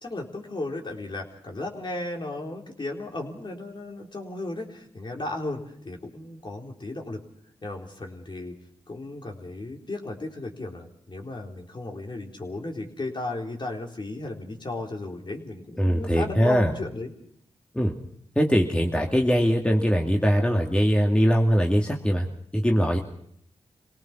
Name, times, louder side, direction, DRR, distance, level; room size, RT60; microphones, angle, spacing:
voice 1, 0.0-7.2 7.6-8.6 8.9-17.1, left 2 dB, 45° left, 1 dB, 3.8 m, -35 dB
voice 2, 15.8-16.7 17.7-17.9 18.4-22.3 22.5-23.0, equal, 10° left, 1 dB, 2.3 m, -21 dB
24.5 x 18.0 x 6.0 m, 0.69 s
cardioid pair, 45°, 11 cm